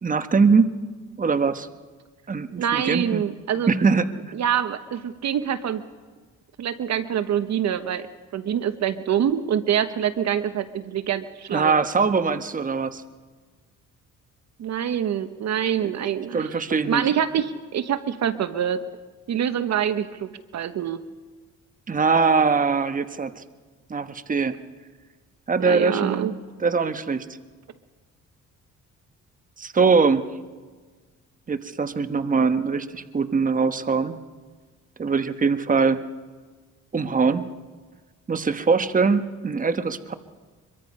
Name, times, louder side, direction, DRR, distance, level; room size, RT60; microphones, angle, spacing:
voice 1, 0.0-0.7 1.2-1.7 2.3-3.2 3.7-4.1 11.5-13.0 15.8-15.9 16.3-17.1 21.9-23.4 23.9-24.6 25.5-26.3 26.6-27.2 29.6-30.2 31.5-34.2 35.0-36.0 36.9-37.5 38.3-40.1, right 4 dB, 25° right, 10 dB, 1.2 m, -22 dB
voice 2, 2.6-3.7 4.3-5.9 6.6-8.1 8.3-11.8 14.6-16.5 16.9-18.8 19.3-21.0 25.6-26.3, right 9 dB, 60° right, 12 dB, 1.0 m, -25 dB
24.5 x 23.0 x 5.5 m, 1.4 s
cardioid pair, 90°, 30 cm